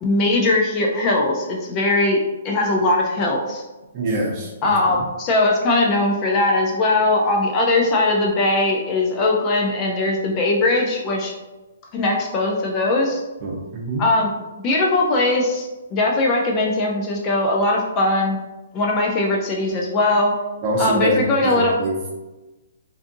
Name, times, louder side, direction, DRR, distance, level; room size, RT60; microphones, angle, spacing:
voice 1, 0.0-2.2 2.4-3.6 4.6-11.3 11.9-13.2 14.0-14.3 14.6-18.4 18.7-20.3 20.8-21.7, left 2 dB, 25° left, -1 dB, 0.4 m, -20 dB
voice 2, 3.9-5.1 13.4-14.1 20.6-22.1, right 1 dB, 30° right, -2 dB, 0.7 m, -25 dB
2.5 x 2.5 x 2.5 m, 1.1 s
hypercardioid pair, 155°, 0 cm